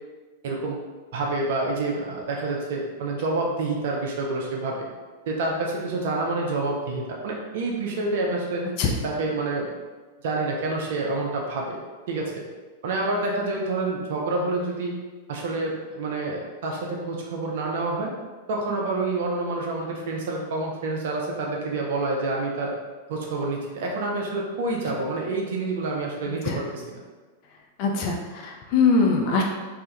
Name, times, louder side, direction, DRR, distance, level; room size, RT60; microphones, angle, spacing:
voice 1, 0.4-0.8 1.1-4.8 5.3-8.7 9.0-9.7 10.2-11.8 12.1-12.4 12.8-14.9 15.3-18.1 18.5-22.7 23.1-27.0, right 2 dB, 55° right, -1 dB, 0.4 m, -28 dB
voice 2, 27.8-29.4, left 4 dB, 45° left, 1 dB, 0.3 m, -22 dB
2.2 x 2.0 x 2.7 m, 1.4 s
figure-of-eight pair, 95°, 0 cm